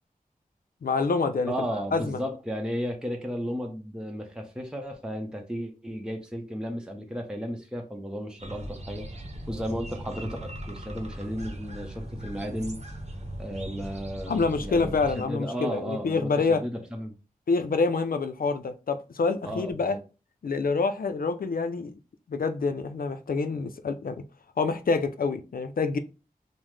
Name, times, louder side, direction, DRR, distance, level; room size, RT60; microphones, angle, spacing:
voice 1, 0.8-1.5 1.9-2.2 14.3-16.6 17.5-20.0 20.4-21.9 22.3-24.2 24.6-26.0, left 4 dB, 75° left, 0.4 m, -27 dB
voice 2, 1.4-12.8 13.4-17.2 19.4-19.7, equal, 5° right, 0.7 m, -34 dB
sound 1, 8.4-15.2, equal, 45° right, 0.8 m, -39 dB
5.4 x 2.1 x 3.2 m
wide cardioid pair, 85°, 15 cm